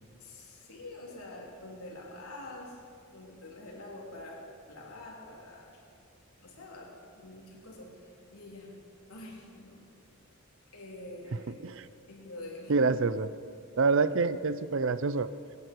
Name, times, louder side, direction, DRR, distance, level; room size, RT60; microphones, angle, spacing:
voice 1, 0.2-2.8 3.1-5.8 6.4-8.7 9.1-9.8 10.7-11.5 12.1-13.1, left 2 dB, 85° left, -2 dB, 3.5 m, -46 dB
voice 2, 12.7-13.3 13.8-15.3, right 4 dB, 60° right, 14 dB, 0.6 m, -26 dB
23.5 x 11.0 x 4.6 m, 2.3 s
head